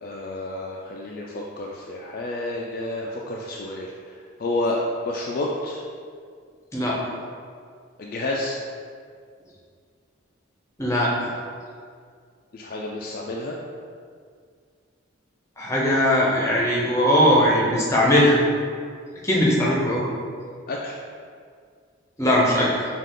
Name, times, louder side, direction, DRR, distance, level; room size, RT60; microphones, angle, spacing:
voice 1, 0.0-3.9 4.4-5.8 8.0-8.6 12.5-13.6 20.7-21.0, left 2 dB, 45° left, -2 dB, 0.3 m, -29 dB
voice 2, 10.8-11.3 15.6-18.4 19.2-20.0 22.2-22.7, equal, 15° left, -5 dB, 0.7 m, -19 dB
5.5 x 2.4 x 3.7 m, 2.1 s
head